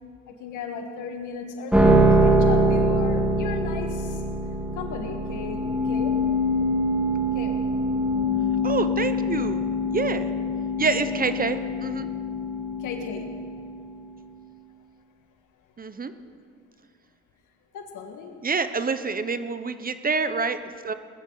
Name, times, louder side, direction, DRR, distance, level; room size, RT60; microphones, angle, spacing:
voice 1, 0.3-4.2 4.8-6.3 7.3-7.7 12.8-13.3 17.7-18.4, left 5 dB, 85° left, 4 dB, 1.7 m, -36 dB
sound 1, 1.7-14.0, equal, 5° right, 2.3 m, -24 dB
voice 2, 8.6-10.3 10.8-12.1 15.8-16.1 18.4-20.6 20.8-20.9, right 4 dB, 30° right, 11 dB, 0.8 m, -27 dB
20.0 x 14.0 x 4.0 m, 2.2 s
cardioid pair, 90°, 30 cm